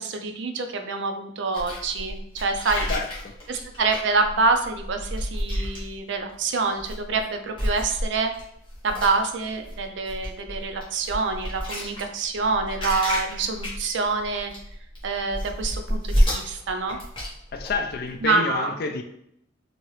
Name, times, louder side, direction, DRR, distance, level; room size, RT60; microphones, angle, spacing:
voice 1, 0.0-2.9 3.5-8.3 8.8-14.5 15.0-17.0 18.2-18.7, right 4 dB, 60° right, 6 dB, 0.4 m, -26 dB
sound 1, 1.5-6.3 6.7-7.2 7.5-18.3, equal, 25° left, 1.0 m, -30 dB
voice 2, 2.9-3.3 17.5-19.0, left 4 dB, 50° left, 6 dB, 0.3 m, -29 dB
2.9 x 2.7 x 3.1 m, 0.73 s
head